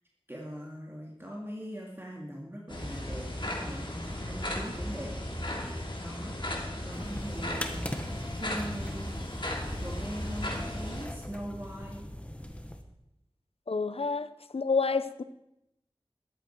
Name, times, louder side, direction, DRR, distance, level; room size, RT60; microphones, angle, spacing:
voice 1, 0.3-3.9 4.2-5.1 5.6-6.4 6.8-9.1 9.8-12.1, equal, 25° right, -2 dB, 2.3 m, -41 dB
sound 1, 2.7-11.1, left 1 dB, 55° left, 2.9 m, -36 dB
sound 2, 6.9-12.8, equal, 15° left, 1.4 m, -41 dB
voice 2, 13.7-15.2, left 4 dB, 80° left, 13 dB, 0.6 m, -29 dB
13.5 x 11.5 x 4.6 m, 0.84 s
wide cardioid pair, 50°, 10 cm